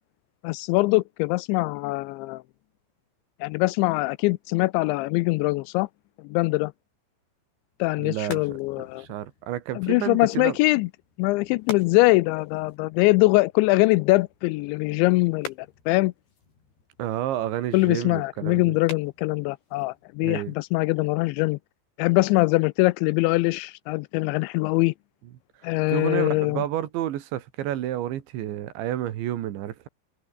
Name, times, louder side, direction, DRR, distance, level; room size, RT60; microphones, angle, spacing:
voice 1, 0.4-2.4 3.4-5.9 6.2-6.7 7.8-9.1 9.8-10.9 11.2-15.5 15.9-16.1 17.7-21.6 22.0-24.9 25.6-26.6, left 22 dB, 85° left, 2.8 m, -22 dB
sound 1, 7.7-21.2, left 4 dB, 60° left, 9.0 m, -46 dB
voice 2, 8.0-8.6 9.0-10.6 17.0-18.8 20.2-20.5 25.9-29.9, right 12 dB, 75° right, 4.0 m, -30 dB
omnidirectional pair, 5.4 m